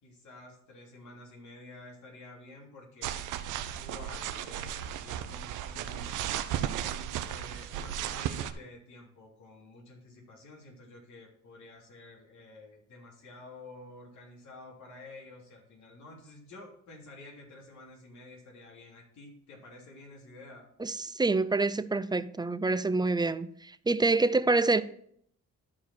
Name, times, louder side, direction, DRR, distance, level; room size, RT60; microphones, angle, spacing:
voice 1, 0.0-3.2 3.8-6.1 6.8-20.7, left 2 dB, 70° left, 3.2 m, -50 dB
sound 1, 3.0-8.5, right 10 dB, 90° right, 0.7 m, -35 dB
voice 2, 20.8-24.8, right 3 dB, 15° right, 0.4 m, -27 dB
12.5 x 4.8 x 4.3 m
cardioid pair, 90°, 30 cm